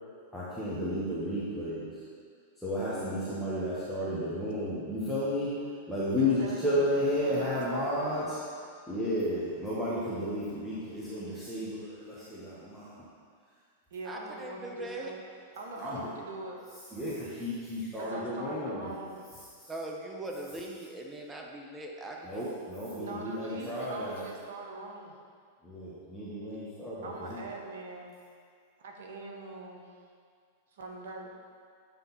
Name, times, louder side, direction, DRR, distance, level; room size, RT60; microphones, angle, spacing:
voice 1, 0.3-1.9 2.6-5.5 5.9-8.4 8.9-12.9 15.8-16.0 16.9-18.9 22.2-24.2 25.6-27.4, left 1 dB, ahead, -11 dB, 1.3 m, -32 dB
voice 2, 6.2-6.9 7.2-8.4 13.9-16.7 18.0-19.3 23.0-25.1 27.0-28.2 28.8-29.9 30.7-31.3, right 2 dB, 65° right, 1 dB, 1.0 m, -42 dB
voice 3, 14.0-15.1 19.7-22.5, right 1 dB, 15° right, 0 dB, 0.8 m, -40 dB
7.9 x 3.6 x 4.1 m, 2.1 s
figure-of-eight pair, 100°, 0 cm